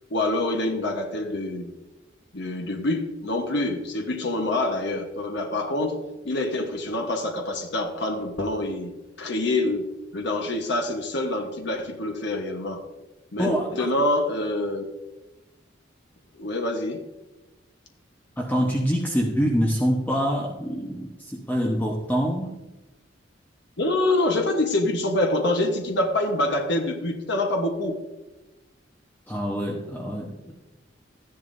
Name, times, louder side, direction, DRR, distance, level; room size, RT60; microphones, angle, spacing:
voice 1, 0.1-1.7 2.3-6.0 6.2-8.9 9.2-9.8 10.1-12.8 13.3-14.8 16.3-17.0 23.8-28.0, left 2 dB, 65° left, 4 dB, 1.2 m, -26 dB
voice 2, 13.4-13.9 18.4-22.6 29.3-30.3, equal, 10° left, -1 dB, 1.1 m, -25 dB
14.0 x 10.5 x 2.7 m, 1.1 s
head